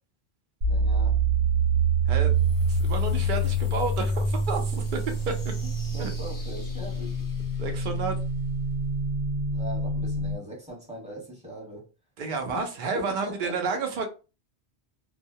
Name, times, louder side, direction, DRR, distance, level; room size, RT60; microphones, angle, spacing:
sound 1, 0.6-10.4, right 2 dB, 80° right, 1.0 m, -26 dB
voice 1, 0.7-1.2 5.6-7.2 9.5-11.9 12.5-12.7 12.9-13.8, right 1 dB, 5° right, 1.0 m, -40 dB
sound 2, 2.1-9.0, left 2 dB, 35° left, 0.3 m, -48 dB
voice 2, 2.7-4.6 4.9-5.0 6.0-6.1 7.6-8.2 12.2-14.1, right 4 dB, 55° right, 0.7 m, -30 dB
2.3 x 2.1 x 2.6 m
omnidirectional pair, 1.1 m